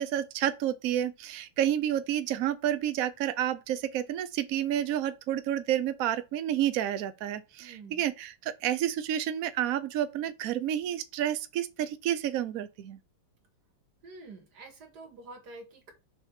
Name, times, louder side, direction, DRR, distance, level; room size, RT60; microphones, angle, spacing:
voice 1, 0.0-13.0, right 11 dB, 80° right, 0.7 m, -30 dB
voice 2, 7.6-8.0 14.0-15.9, right 3 dB, 55° right, 2.1 m, -47 dB
6.5 x 2.9 x 5.7 m
omnidirectional pair, 2.1 m